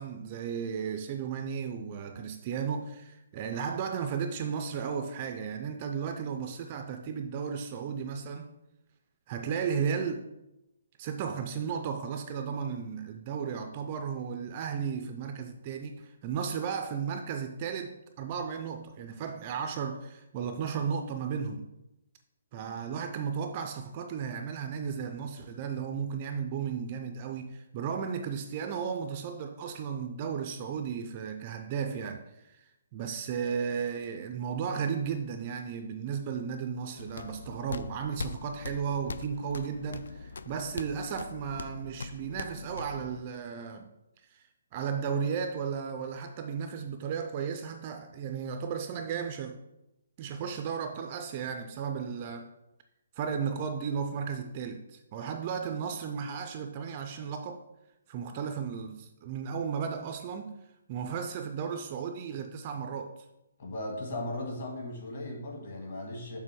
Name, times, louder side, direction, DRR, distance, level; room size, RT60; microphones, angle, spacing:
voice 1, 0.0-8.5 9.3-10.3 11.0-21.7 22.5-43.9 44.3-44.5 44.7-49.6 50.2-52.5 53.2-57.6 58.1-60.5 60.9-63.2, right 6 dB, 20° right, 0.3 m, -34 dB
sound 1, 36.9-43.2, left 4 dB, 75° left, 0.4 m, -42 dB
voice 2, 63.6-66.4, left 1 dB, 40° left, 1.8 m, -37 dB
6.6 x 3.3 x 6.1 m
hypercardioid pair, 175°, 0 cm